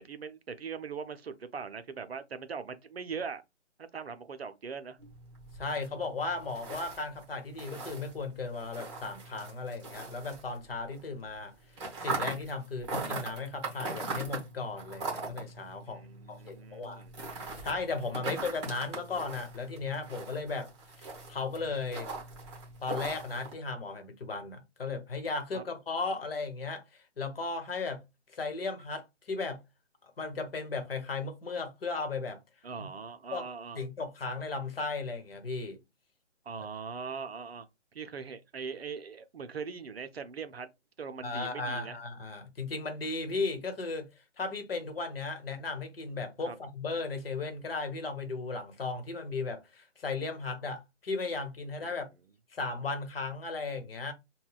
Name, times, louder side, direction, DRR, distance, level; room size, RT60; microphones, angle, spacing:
voice 1, 0.0-3.4 3.9-5.0 15.9-17.1 18.1-18.4 25.5-25.6 32.6-33.8 36.5-37.7 37.9-40.7 41.0-42.0 46.4-46.6 51.8-51.9, right 5 dB, 55° right, 0.6 m, -41 dB
sound 1, 5.0-11.0 11.3-23.5, right 3 dB, 25° right, 1.1 m, -41 dB
voice 2, 5.6-11.5 12.0-17.1 17.4-20.7 21.0-22.1 22.8-28.0 28.3-29.6 30.0-32.4 32.8-32.9 33.3-33.5 33.7-35.8 41.2-44.1 44.4-52.1 52.5-54.1, left 3 dB, 55° left, 1.0 m, -36 dB
5.4 x 2.2 x 2.2 m
figure-of-eight pair, 140°, 36 cm